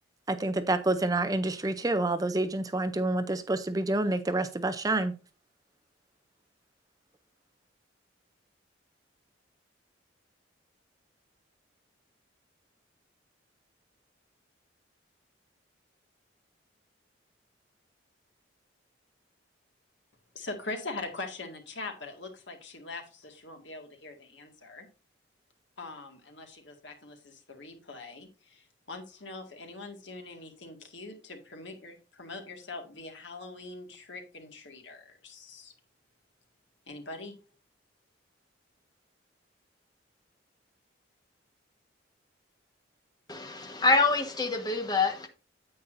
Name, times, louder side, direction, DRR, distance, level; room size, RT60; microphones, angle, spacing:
voice 1, 0.3-5.1, right 2 dB, 20° right, 0.5 m, -28 dB
voice 2, 20.3-24.9 25.8-35.7 36.9-37.4, left 3 dB, 70° left, 1.9 m, -42 dB
voice 3, 43.3-45.3, left 3 dB, 20° left, 1.3 m, -26 dB
9.5 x 8.3 x 2.6 m
head